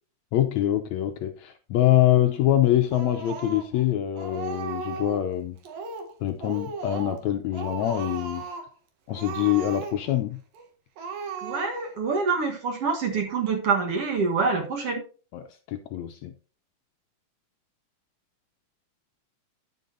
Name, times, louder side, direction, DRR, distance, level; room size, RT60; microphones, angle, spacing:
voice 1, 0.3-5.6 6.2-8.4 9.1-10.4 15.3-16.3, left 13 dB, 75° left, 1.8 m, -24 dB
Speech, 2.9-3.8 4.2-5.3 5.6-6.1 6.4-7.3 7.5-8.7 9.1-10.2 10.5-10.7 11.0-12.0, right 5 dB, 90° right, 3.5 m, -36 dB
voice 2, 11.4-15.0, right 4 dB, 55° right, 1.9 m, -26 dB
10.0 x 9.5 x 2.6 m
omnidirectional pair, 3.8 m